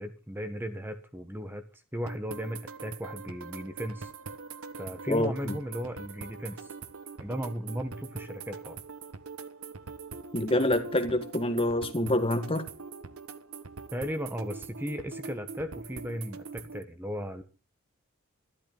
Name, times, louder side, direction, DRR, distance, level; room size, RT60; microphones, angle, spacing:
voice 1, 0.0-1.6 1.9-4.1 4.8-6.7 7.2-8.8 13.9-17.4, equal, 10° right, 1.3 m, -36 dB
sound 1, 2.1-16.8, right 4 dB, 75° right, 1.3 m, -43 dB
voice 2, 5.1-5.6 10.3-12.7, left 1 dB, 25° left, 1.7 m, -27 dB
13.0 x 12.5 x 5.5 m
head